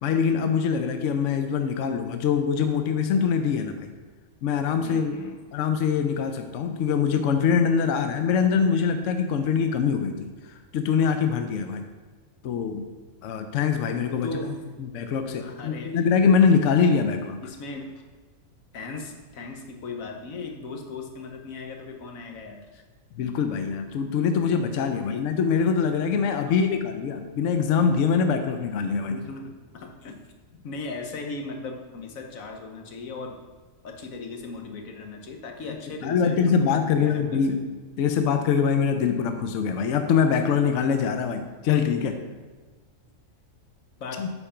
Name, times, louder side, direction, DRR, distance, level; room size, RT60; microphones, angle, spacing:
voice 1, 0.0-3.9 4.4-5.1 5.5-10.3 10.7-11.8 12.4-12.8 13.2-14.3 14.8-17.4 23.2-29.2 36.0-37.6 38.0-42.2 44.2-44.3, left 6 dB, 70° left, 7 dB, 0.9 m, -23 dB
voice 2, 4.8-5.4 14.1-14.6 15.4-16.0 17.4-17.9 18.7-22.8 25.0-25.3 26.5-26.6 29.1-30.2 30.6-33.4 33.8-37.6 44.0-44.3, left 3 dB, 90° left, 3 dB, 1.4 m, -37 dB
8.5 x 4.5 x 5.6 m, 1.4 s
omnidirectional pair, 1.4 m